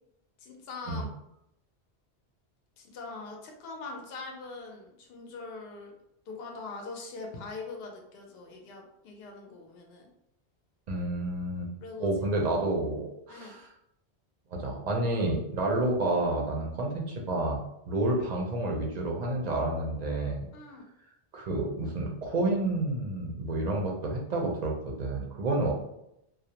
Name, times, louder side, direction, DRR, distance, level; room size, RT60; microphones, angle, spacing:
voice 1, 0.4-1.1 2.8-5.9 6.3-10.1 11.8-12.5 13.3-13.6 20.5-20.9, left 3 dB, 70° left, 1 dB, 0.8 m, -42 dB
voice 2, 10.9-11.7 12.0-13.7 14.5-17.6 17.9-20.4 21.3-25.7, right 2 dB, 55° right, 0 dB, 0.5 m, -29 dB
2.3 x 2.0 x 2.7 m, 0.80 s
omnidirectional pair, 1.1 m